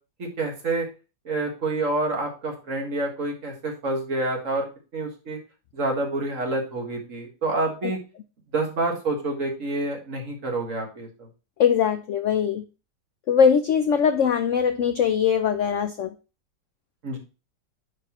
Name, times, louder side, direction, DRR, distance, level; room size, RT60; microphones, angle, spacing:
voice 1, 0.2-0.9 1.3-4.7 4.9-5.4 5.7-8.0 8.5-11.3 17.0-17.2, right 2 dB, 50° right, 1 dB, 1.9 m, -28 dB
voice 2, 11.6-12.6 13.3-16.1, left 7 dB, 70° left, 8 dB, 0.7 m, -21 dB
9.8 x 4.5 x 3.0 m, 0.31 s
omnidirectional pair, 1.8 m